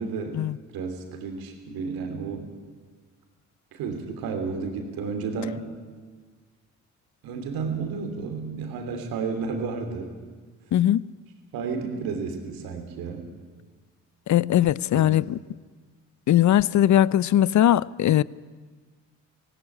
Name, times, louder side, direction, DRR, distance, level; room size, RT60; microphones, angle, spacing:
voice 1, 0.0-0.4 0.7-2.5 3.7-5.7 7.2-10.1 11.5-13.2 14.9-15.1, right 5 dB, 85° right, 3.0 m, -32 dB
voice 2, 10.7-11.0 14.3-15.4 16.3-18.2, left 12 dB, 55° left, 0.6 m, -20 dB
17.0 x 17.0 x 9.9 m
supercardioid pair, 55°, 35 cm